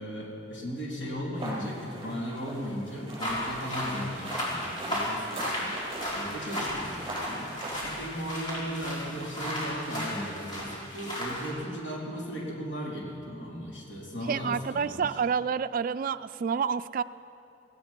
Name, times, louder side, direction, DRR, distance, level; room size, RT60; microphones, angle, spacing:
voice 1, 0.0-7.5 7.8-15.2, equal, 65° left, -4 dB, 4.0 m, -36 dB
sound 1, 1.3-8.0, right 1 dB, 30° right, 4.7 m, -41 dB
sound 2, 3.2-11.5, equal, 25° left, 4.5 m, -34 dB
voice 2, 14.3-17.0, right 6 dB, 45° right, 15 dB, 0.3 m, -29 dB
17.5 x 16.5 x 4.5 m, 2.7 s
head